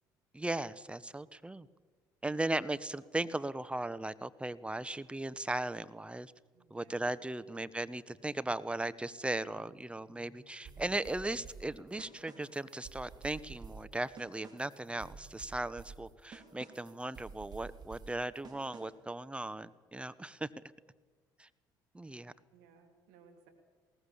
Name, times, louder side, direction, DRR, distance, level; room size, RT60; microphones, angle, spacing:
voice 1, 0.3-1.7 2.2-6.3 6.7-20.5 21.4-21.5 21.9-22.3, right 2 dB, 10° right, 15 dB, 1.0 m, -37 dB
voice 2, 2.3-3.1 6.5-7.7 22.5-23.5, right 6 dB, 80° right, 3 dB, 2.8 m, -63 dB
sound 1, 7.9-15.9, left 2 dB, 65° left, 3.1 m, -65 dB
sound 2, 10.6-19.1, right 5 dB, 45° right, 3.9 m, -51 dB
20.5 x 18.5 x 7.1 m, 1.4 s
hypercardioid pair, 60°, 10 cm